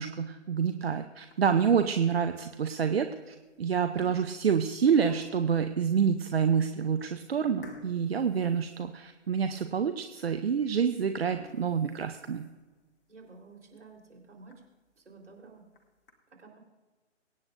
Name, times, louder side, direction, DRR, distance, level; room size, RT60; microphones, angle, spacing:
voice 1, 0.0-12.4, right 7 dB, 55° right, 8 dB, 0.7 m, -27 dB
sound 1, 1.2-1.7 2.3-2.4 3.2-3.5 3.7-5.6 6.2-6.3 6.7-6.8 7.6-9.4 9.8-9.9 10.4-10.5 11.1-12.7 13.2-13.3 13.7-13.8 14.1-14.2 14.5-14.6 15.5-16.1, left 4 dB, 45° left, 1.7 m, -51 dB
voice 2, 13.1-14.6 15.0-15.6 16.3-16.6, right 4 dB, 70° right, 0 dB, 4.0 m, -52 dB
23.5 x 9.5 x 2.6 m, 1.2 s
figure-of-eight pair, 145°, 37 cm